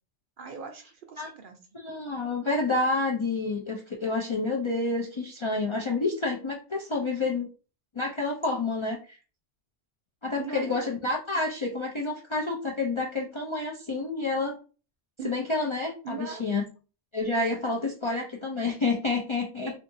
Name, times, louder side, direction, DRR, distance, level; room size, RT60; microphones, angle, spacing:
voice 1, 0.4-1.6 10.4-10.9 11.3-11.4 15.2-15.3 16.0-16.4, right 5 dB, 60° right, 5 dB, 0.6 m, -39 dB
voice 2, 1.7-7.5 8.0-9.2 10.2-14.6 15.2-16.6 17.1-19.7, left 3 dB, 45° left, -1 dB, 0.3 m, -29 dB
3.6 x 2.6 x 2.6 m, 0.35 s
omnidirectional pair, 1.1 m